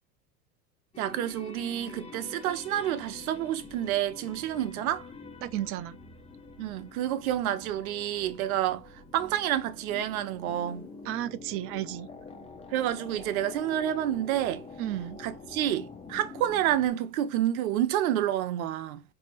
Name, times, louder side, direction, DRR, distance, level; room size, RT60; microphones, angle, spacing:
sound 1, 0.9-16.9, left 3 dB, 15° left, 0.7 m, -46 dB
voice 1, 1.0-5.1 6.6-10.9 12.7-14.7 15.2-19.0, right 12 dB, 70° right, 0.8 m, -29 dB
voice 2, 5.4-6.0 11.0-12.1 14.8-15.2, right 13 dB, 35° right, 0.4 m, -33 dB
4.4 x 2.8 x 2.5 m
hypercardioid pair, 90°, 44 cm